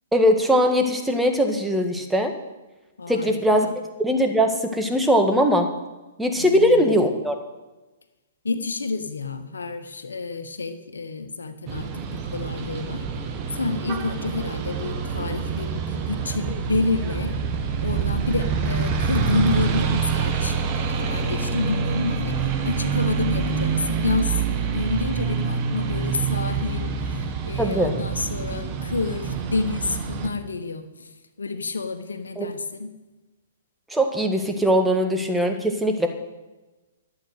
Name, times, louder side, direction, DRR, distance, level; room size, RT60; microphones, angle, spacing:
voice 1, 0.1-2.3 3.1-3.7 4.0-5.7 6.2-7.3 27.6-27.9 32.4-32.5 33.9-36.1, equal, 5° right, 4 dB, 1.7 m, -20 dB
voice 2, 3.0-3.8 6.4-7.0 8.4-13.1 13.5-17.4 17.8-31.1 31.4-32.9, left 3 dB, 75° left, 9 dB, 1.3 m, -29 dB
sound 1, 11.7-30.3, right 6 dB, 35° right, 1.6 m, -26 dB
12.0 x 8.6 x 6.7 m, 1.1 s
figure-of-eight pair, 120°, 0 cm